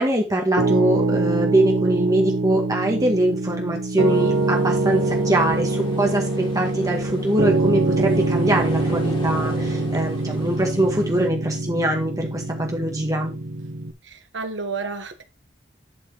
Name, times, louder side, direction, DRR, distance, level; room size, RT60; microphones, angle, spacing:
voice 1, 0.0-13.3, right 1 dB, 20° right, 1.7 m, -23 dB
Piano, 0.6-13.9, right 2 dB, 85° right, 1.5 m, -24 dB
sound 1, 4.0-11.3, left 1 dB, 30° left, 2.8 m, -37 dB
voice 2, 14.0-15.2, right 4 dB, 70° right, 1.7 m, -31 dB
11.0 x 4.8 x 4.8 m
head